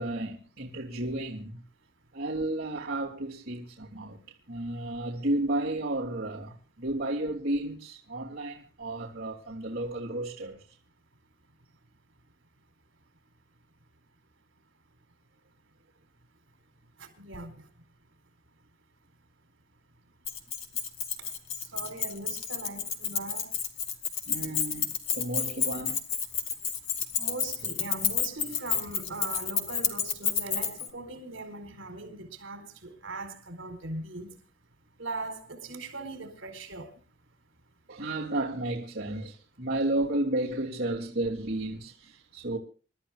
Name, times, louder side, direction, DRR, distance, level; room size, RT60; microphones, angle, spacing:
voice 1, 0.0-1.6 2.1-4.2 4.5-10.6 24.3-26.0 37.9-42.6, right 1 dB, 50° right, 3.0 m, -32 dB
voice 2, 17.0-17.5 21.2-21.3 21.6-23.5 27.2-34.4 35.0-36.9, right 2 dB, 65° right, 4.2 m, -40 dB
Keys jangling, 20.2-30.9, left 7 dB, 80° left, 2.1 m, -30 dB
28.0 x 13.0 x 2.5 m
head